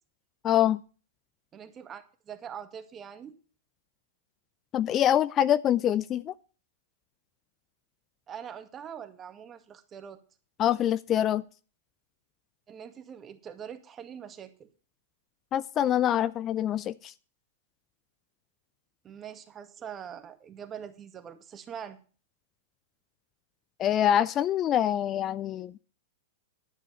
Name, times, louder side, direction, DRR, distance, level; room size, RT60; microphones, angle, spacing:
voice 1, 0.4-0.8 4.7-6.3 10.6-11.4 15.5-17.1 23.8-25.7, left 11 dB, 30° left, 0.5 m, -25 dB
voice 2, 1.5-3.3 8.3-10.2 12.7-14.7 19.0-22.0, right 8 dB, 25° right, 1.9 m, -43 dB
11.5 x 9.5 x 5.6 m
hypercardioid pair, 105°, 0 cm